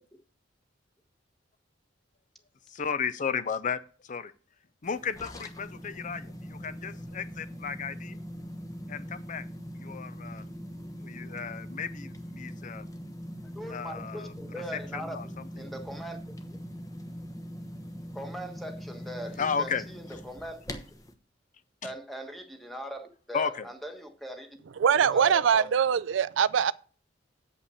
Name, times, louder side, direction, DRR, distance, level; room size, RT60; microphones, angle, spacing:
voice 1, 2.7-4.3 4.8-8.2 8.9-9.5 9.8-10.4 11.0-12.8 13.7-14.3 14.9-15.3 19.4-19.8 21.8-21.9 23.3-23.7, left 6 dB, 40° left, 0.5 m, -34 dB
sound 1, 4.8-21.1, equal, 20° left, 1.0 m, -42 dB
voice 2, 13.5-15.2 15.6-16.3 18.1-20.6 21.8-24.6 24.9-25.7, right 1 dB, ahead, 1.3 m, -40 dB
voice 3, 24.8-26.7, right 7 dB, 90° right, 0.4 m, -23 dB
8.2 x 5.5 x 7.0 m
head